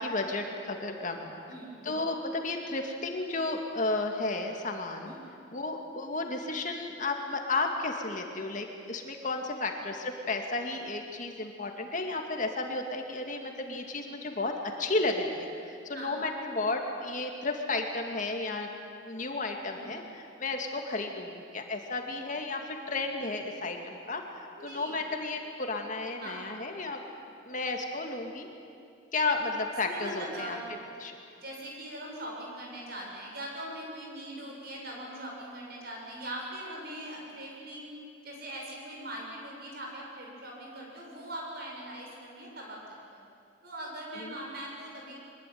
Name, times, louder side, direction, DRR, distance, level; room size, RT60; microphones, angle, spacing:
voice 1, 0.0-1.4 1.8-5.1 5.5-18.7 19.0-27.0 27.5-28.5 29.1-30.6 31.0-31.1 44.2-44.4, left 2 dB, 40° left, 3 dB, 2.2 m, -33 dB
voice 2, 1.5-2.0 5.0-5.4 15.9-16.2 19.7-20.1 24.6-25.0 26.2-26.6 29.9-30.6 31.4-37.9 38.2-43.2 43.6-45.1, right 1 dB, 55° right, -2 dB, 7.5 m, -41 dB
24.0 x 21.0 x 9.4 m, 2.4 s
head